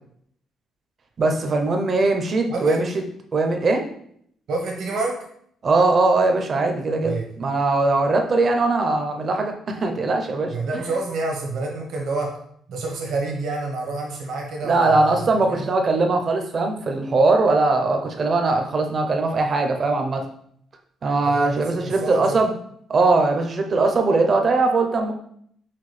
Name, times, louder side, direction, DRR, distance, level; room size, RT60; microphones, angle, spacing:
voice 1, 1.2-2.9 3.3-3.8 5.6-10.8 14.6-20.2 21.0-22.5 22.9-25.1, right 3 dB, 40° right, 4 dB, 0.6 m, -20 dB
voice 2, 4.5-5.1 7.0-7.3 10.5-12.3 12.7-15.2 15.5-15.7 21.2-22.4, right 3 dB, 70° right, 0 dB, 1.0 m, -28 dB
5.7 x 2.3 x 3.2 m, 0.67 s
cardioid pair, 115°, 0 cm